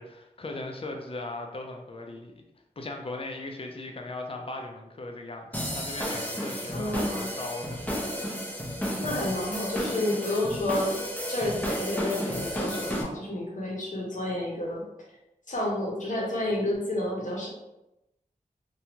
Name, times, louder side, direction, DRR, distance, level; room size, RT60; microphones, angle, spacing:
voice 1, 0.0-2.4 2.8-7.8, left 2 dB, 40° left, 2 dB, 0.5 m, -38 dB
sound 1, 5.5-13.0, equal, 10° left, 0.8 m, -32 dB
voice 2, 6.7-7.3 9.0-11.0 11.3-14.8 15.5-17.5, left 1 dB, 60° left, -3 dB, 0.9 m, -30 dB
2.7 x 2.3 x 2.8 m, 0.92 s
cardioid pair, 45°, 15 cm